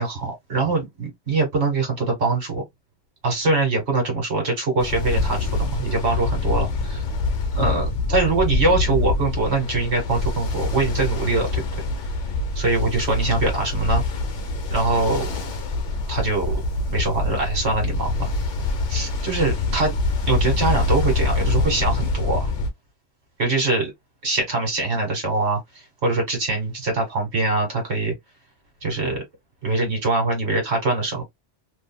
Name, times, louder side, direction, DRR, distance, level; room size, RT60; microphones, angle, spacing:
voice 1, 0.0-2.6 3.2-7.0 7.6-11.6 12.5-14.0 14.7-15.3 16.1-16.6 16.9-18.3 18.9-19.9 20.3-22.5 23.4-23.9 24.2-25.6 26.0-28.1 28.8-29.2 29.6-31.2, right 3 dB, 60° right, 1.6 m, -23 dB
Ocean, 4.8-22.7, left 2 dB, 75° left, 1.1 m, -25 dB
2.8 x 2.8 x 2.2 m
omnidirectional pair, 1.2 m